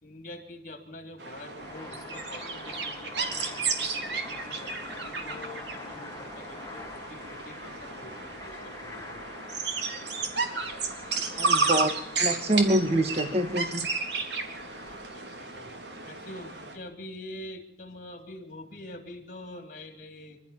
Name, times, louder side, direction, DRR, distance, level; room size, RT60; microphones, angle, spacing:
voice 1, 0.0-9.2 14.9-15.7 16.0-20.4, left 1 dB, 45° left, 6 dB, 3.6 m, -45 dB
sound 1, 1.2-16.8, right 4 dB, 70° right, 3.6 m, -33 dB
sound 2, 1.4-15.0, left 3 dB, 15° left, 1.8 m, -45 dB
voice 2, 11.4-11.9 12.2-13.9, right 1 dB, 35° right, 7 dB, 1.6 m, -25 dB
26.5 x 13.5 x 8.6 m, 0.74 s
head